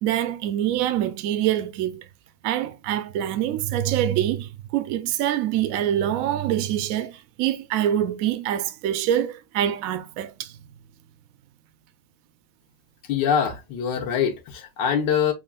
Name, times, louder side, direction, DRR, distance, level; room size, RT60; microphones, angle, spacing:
voice 1, 0.0-2.1 2.4-10.5, right 11 dB, 75° right, 0.8 m, -25 dB
voice 2, 13.1-15.3, left 8 dB, 70° left, 1.4 m, -24 dB
5.8 x 2.4 x 2.2 m
omnidirectional pair, 2.0 m